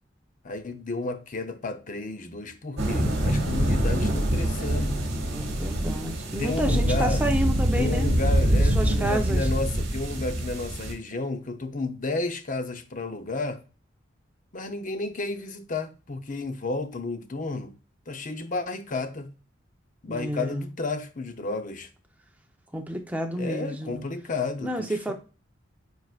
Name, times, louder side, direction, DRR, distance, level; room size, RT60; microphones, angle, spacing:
voice 1, 0.4-5.0 6.4-7.2 7.7-13.6 14.5-17.7 18.1-19.3 20.0-21.9 23.3-25.1, left 3 dB, 40° left, 0.7 m, -32 dB
sound 1, 2.8-10.9, right 1 dB, 60° right, 2.0 m, -25 dB
voice 2, 5.3-8.1 8.5-9.5 20.1-20.7 22.7-24.0 24.6-25.1, right 1 dB, 10° right, 0.9 m, -30 dB
9.2 x 4.9 x 2.5 m
head